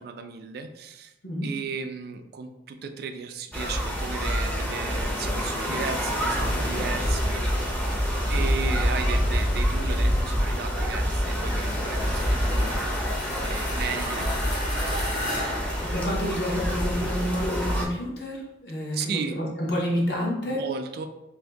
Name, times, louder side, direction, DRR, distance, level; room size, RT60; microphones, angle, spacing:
voice 1, 0.0-1.1 1.4-7.4 8.3-15.6 18.9-19.3 20.5-21.1, right 6 dB, 60° right, 7 dB, 0.3 m, -35 dB
sound 1, 3.5-17.9, equal, 10° left, 0.5 m, -26 dB
sound 2, 11.4-16.6, left 1 dB, 85° left, 1.3 m, -35 dB
voice 2, 15.5-20.6, equal, 65° left, -2 dB, 0.8 m, -29 dB
2.7 x 2.6 x 3.3 m, 0.91 s
head